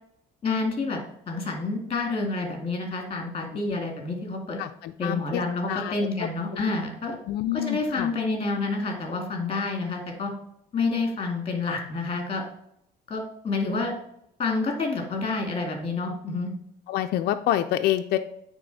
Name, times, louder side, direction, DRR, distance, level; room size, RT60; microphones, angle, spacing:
voice 1, 0.4-1.0 1.3-4.6 5.0-7.2 7.5-10.3 10.7-12.4 13.1-13.9 14.4-16.5, left 3 dB, 35° left, 2 dB, 2.2 m, -28 dB
voice 2, 4.6-5.4 5.7-6.6 7.3-8.1 16.9-18.2, left 12 dB, 70° left, 6 dB, 0.4 m, -28 dB
9.0 x 3.6 x 4.1 m, 0.74 s
cardioid pair, 110°, 17 cm